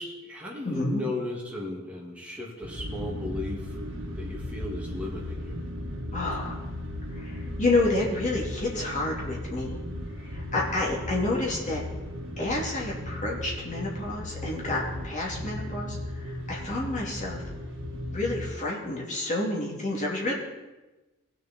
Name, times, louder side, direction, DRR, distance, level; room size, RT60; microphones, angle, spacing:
voice 1, 0.0-3.8 4.1-5.6, left 2 dB, 5° right, -3 dB, 2.3 m, -36 dB
voice 2, 0.6-1.0 6.1-6.6 7.1-9.8 10.2-11.8 12.4-17.5 17.9-20.3, left 2 dB, 35° left, -4 dB, 3.0 m, -29 dB
sound 1, 2.6-18.5, left 1 dB, 60° right, 2.9 m, -36 dB
19.0 x 6.7 x 4.5 m, 1.1 s
head